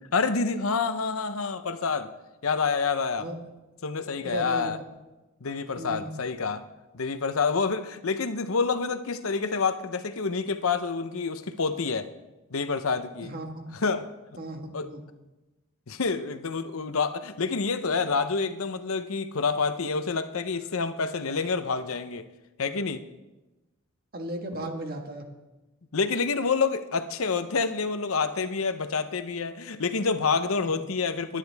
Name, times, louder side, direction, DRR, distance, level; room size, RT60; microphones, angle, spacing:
voice 1, 0.1-2.1 2.4-3.3 3.8-4.8 5.4-6.6 6.9-12.1 12.5-13.3 13.7-14.1 14.7-14.9 15.9-22.3 22.6-23.0 24.5-24.7 25.9-31.4, left 4 dB, 75° left, 10 dB, 0.8 m, -28 dB
voice 2, 4.2-4.7 5.8-6.1 13.3-13.7 14.4-15.0 24.1-25.3, right 1 dB, 45° right, 4 dB, 1.6 m, -36 dB
20.5 x 10.0 x 3.5 m, 1.1 s
head